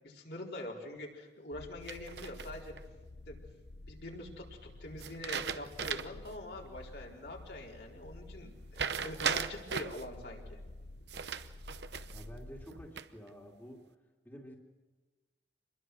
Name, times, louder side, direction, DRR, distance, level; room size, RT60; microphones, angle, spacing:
voice 1, 0.0-2.7 3.3-3.4 3.9-10.6, left 1 dB, 65° left, -2 dB, 4.5 m, -44 dB
sound 1, 1.5-12.9, left 2 dB, 85° left, 0.9 m, -51 dB
sound 2, 1.9-2.8 5.0-6.3 6.7-6.8 8.7-10.0 11.1-12.3 12.7-13.3, right 6 dB, 75° right, 0.9 m, -37 dB
voice 2, 12.1-13.9 14.2-14.6, equal, 10° left, -1 dB, 2.5 m, -50 dB
27.0 x 21.5 x 6.3 m, 1.2 s
head